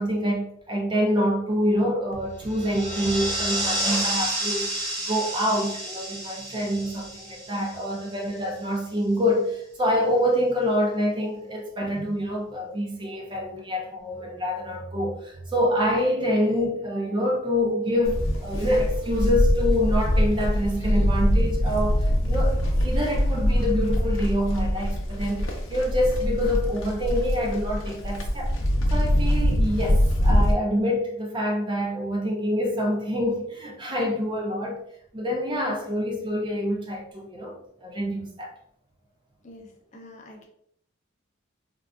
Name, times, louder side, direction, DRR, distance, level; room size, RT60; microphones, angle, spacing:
voice 1, 0.0-28.6 28.9-34.8 35.1-38.5, equal, 25° right, 0.4 m, -26 dB
sound 1, 2.1-4.6, right 2 dB, 80° right, 0.6 m, -42 dB
sound 2, 2.5-8.3, right 1 dB, 40° right, 1.1 m, -30 dB
Livestock farm animals working animals, 18.0-30.5, equal, 80° left, 0.6 m, -23 dB
voice 2, 39.4-40.5, left 1 dB, 35° left, 0.5 m, -46 dB
3.6 x 2.4 x 2.3 m
head